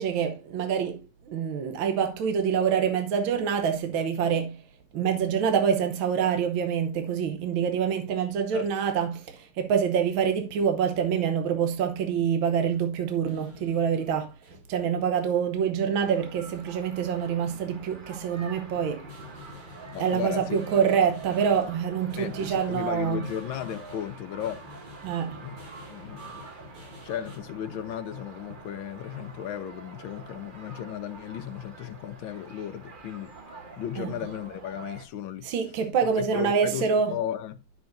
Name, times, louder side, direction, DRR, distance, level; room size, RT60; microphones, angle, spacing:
voice 1, 0.0-4.6 4.9-14.3 14.7-19.1 20.0-23.2 25.0-25.4 34.0-34.1 35.4-37.1, right 7 dB, 70° right, 1.7 m, -26 dB
sound 1, 13.3-27.4, left 2 dB, 55° right, 3.1 m, -50 dB
sound 2, 16.0-35.0, right 3 dB, 35° right, 0.9 m, -46 dB
voice 2, 19.9-20.6 22.2-24.6 25.4-25.6 25.9-26.4 27.0-33.3 33.8-35.5 36.3-37.6, left 10 dB, 70° left, 1.6 m, -35 dB
11.0 x 6.8 x 2.6 m
omnidirectional pair, 2.3 m